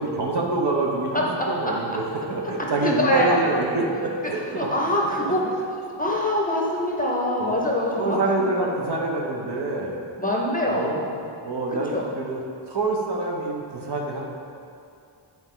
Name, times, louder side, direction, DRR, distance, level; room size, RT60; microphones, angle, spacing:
voice 1, 0.0-2.0 2.3-4.7 5.2-5.3 7.4-7.6 7.9-10.0 10.7-11.0 11.4-12.4 12.7-14.2, right 2 dB, 55° right, 0 dB, 1.0 m, -26 dB
voice 2, 2.8-3.5 4.5-5.5 6.0-8.9 10.2-11.3 11.9-12.1, left 1 dB, 20° left, -2 dB, 0.7 m, -24 dB
10.5 x 4.5 x 3.8 m, 2.5 s
wide cardioid pair, 170°, 47 cm